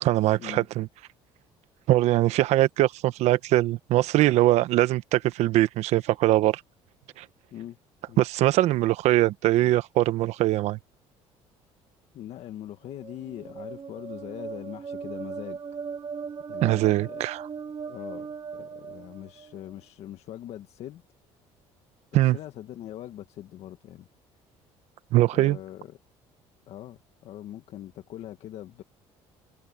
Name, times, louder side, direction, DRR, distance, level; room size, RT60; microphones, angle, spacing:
voice 1, 0.0-0.9 1.9-6.6 7.2-7.3 8.2-10.8 16.6-17.5 22.1-22.4 25.1-25.6, right 15 dB, 70° right, 1.1 m, -22 dB
voice 2, 12.1-15.6 16.5-17.2 17.9-21.0 22.1-24.1 25.3-26.0 26.7-28.8, left 12 dB, 65° left, 1.9 m, -41 dB
sound 1, 12.9-19.7, right 6 dB, 35° right, 1.7 m, -38 dB
open air
cardioid pair, 110°, 12 cm